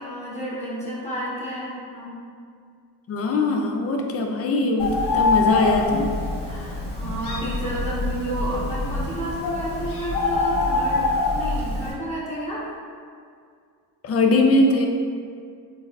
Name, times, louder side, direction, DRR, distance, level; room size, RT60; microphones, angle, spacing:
voice 1, 0.0-2.1 6.5-12.6, equal, 15° left, -9 dB, 1.4 m, -31 dB
voice 2, 3.1-6.1 14.0-14.9, left 2 dB, 30° left, 2 dB, 0.4 m, -21 dB
Bird, 4.8-11.9, left 3 dB, 55° left, 1.0 m, -25 dB
3.9 x 2.0 x 2.5 m, 2.2 s
hypercardioid pair, 55°, 49 cm